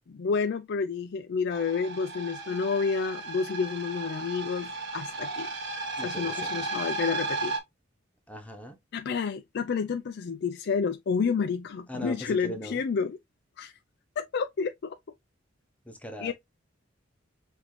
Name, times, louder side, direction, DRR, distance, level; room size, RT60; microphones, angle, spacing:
voice 1, 0.1-5.5 6.0-7.5 8.9-13.2 13.6-13.7 14.2-15.0 16.2-16.3, left 5 dB, 60° left, 0.4 m, -30 dB
sound 1, 1.5-7.6, right 2 dB, 65° right, 1.3 m, -34 dB
voice 2, 6.0-6.7 8.3-8.8 11.9-12.8 15.8-16.3, equal, 5° left, 0.9 m, -40 dB
5.9 x 2.7 x 3.1 m
head